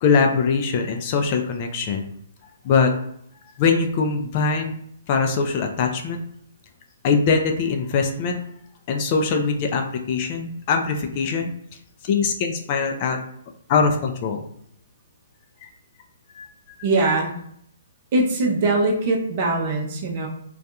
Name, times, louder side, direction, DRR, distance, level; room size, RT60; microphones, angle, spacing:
voice 1, 0.0-2.1 2.6-2.9 3.6-4.7 5.1-6.2 7.0-8.4 8.9-11.5 12.0-13.2 13.7-14.4 15.6-15.7 16.3-16.5, left 5 dB, 40° left, 3 dB, 0.3 m, -22 dB
voice 2, 16.8-17.3 18.1-20.3, right 2 dB, 40° right, -1 dB, 0.6 m, -21 dB
2.7 x 2.3 x 2.3 m, 0.70 s
hypercardioid pair, 135°, 0 cm